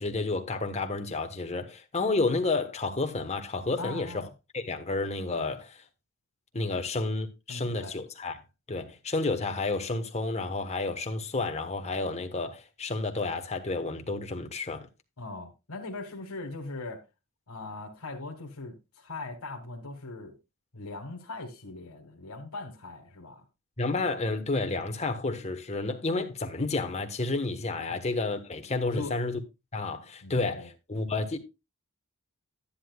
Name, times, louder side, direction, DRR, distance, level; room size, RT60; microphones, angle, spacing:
voice 1, 0.0-4.3 4.5-5.8 6.5-8.4 8.7-14.9 23.8-29.4 29.7-31.4, left 3 dB, 30° left, 1.3 m, -30 dB
voice 2, 3.8-4.3 6.7-6.8 7.5-7.9 15.2-17.0 17.5-20.4 20.7-23.4 27.9-28.0 28.9-29.2 30.2-30.7, left 2 dB, 85° left, 1.7 m, -40 dB
11.5 x 10.0 x 2.3 m
head